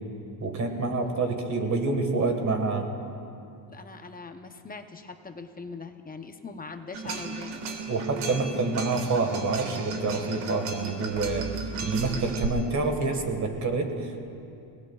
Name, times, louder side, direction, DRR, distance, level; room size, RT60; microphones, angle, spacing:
voice 1, 0.4-2.9 7.9-11.5 11.8-14.2, right 3 dB, 35° right, 4 dB, 1.7 m, -27 dB
voice 2, 3.7-7.6, left 4 dB, 20° left, 6 dB, 0.8 m, -41 dB
sound 1, 6.9-12.5, right 4 dB, 80° right, 1.9 m, -34 dB
29.5 x 18.5 x 2.4 m, 2.6 s
cardioid pair, 125°, 49 cm